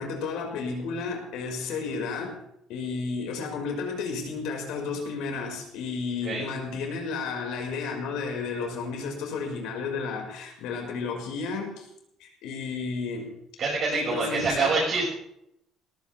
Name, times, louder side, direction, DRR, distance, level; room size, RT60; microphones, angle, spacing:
voice 1, 0.0-2.4 2.7-11.9 12.2-13.3 13.9-14.7, left 4 dB, 80° left, 2 dB, 5.5 m, -32 dB
voice 2, 13.6-15.1, right 3 dB, 45° right, -5 dB, 6.0 m, -26 dB
19.0 x 15.5 x 3.5 m, 0.77 s
cardioid pair, 150°, 0 cm